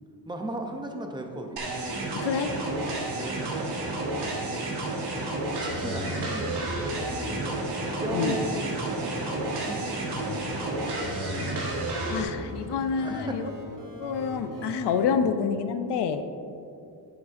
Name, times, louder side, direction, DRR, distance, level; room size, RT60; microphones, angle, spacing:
voice 1, 0.3-1.6 3.1-3.9 4.1-4.8 5.6-7.6 8.0-8.6 9.0-10.1 10.4-10.6 13.0-13.6 15.0-15.3, right 1 dB, 10° right, 3 dB, 0.5 m, -37 dB
sound 1, 1.6-12.2, right 2 dB, 80° right, 1.3 m, -31 dB
voice 2, 2.2-2.5 8.1-8.4 12.1-13.5 14.0-16.2, left 6 dB, 85° left, 9 dB, 0.6 m, -27 dB
sound 2, 5.5-15.0, equal, 55° right, 1.2 m, -41 dB
10.0 x 6.0 x 2.5 m, 2.5 s
wide cardioid pair, 150°, 40 cm